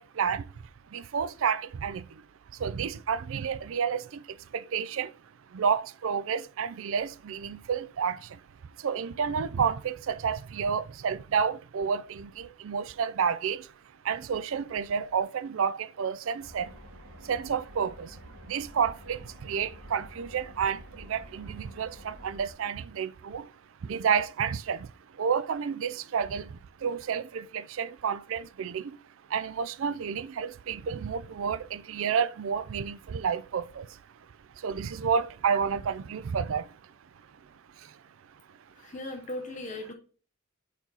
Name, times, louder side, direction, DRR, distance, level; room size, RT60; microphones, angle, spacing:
voice 1, 0.0-2.2 2.5-5.2 5.5-13.7 14.0-16.8 17.2-29.0 29.3-34.3 34.5-38.0 38.3-38.6, right 6 dB, 65° right, 0.4 m, -31 dB
sound 1, 16.4-22.5, equal, 80° right, 2.4 m, -49 dB
voice 2, 38.8-39.9, left 1 dB, 35° left, 0.7 m, -38 dB
4.5 x 4.5 x 5.4 m
head